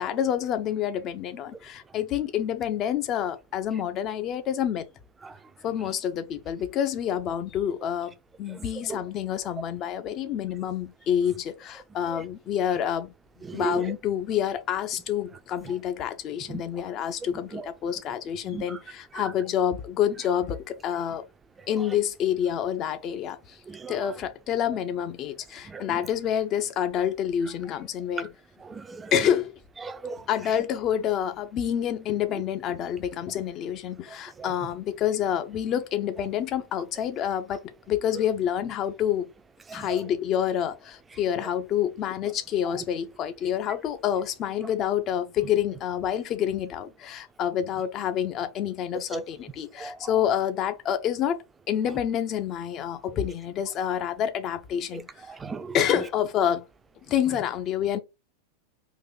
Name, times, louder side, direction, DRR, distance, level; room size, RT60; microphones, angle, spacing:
voice 1, 0.0-4.8 5.6-8.1 8.4-13.1 13.5-21.2 21.7-23.6 23.9-28.3 29.1-29.5 30.3-39.3 39.7-51.4 51.7-55.3 55.7-56.6 57.1-58.0, left 9 dB, 35° left, 0.6 m, -28 dB
voice 2, 8.5-9.0 12.1-12.2 13.4-13.9 16.5-16.6 17.5-17.7 18.5-18.8 21.6-21.7 23.7-24.1 25.6-26.0 28.1-28.3 28.6-29.1 29.8-30.3 34.1-34.5 39.7-40.0 42.7-42.8 49.1-49.2 49.8-50.1 54.9-55.8, right 5 dB, 15° right, 0.5 m, -37 dB
3.9 x 2.7 x 3.9 m
figure-of-eight pair, 90°, 0 cm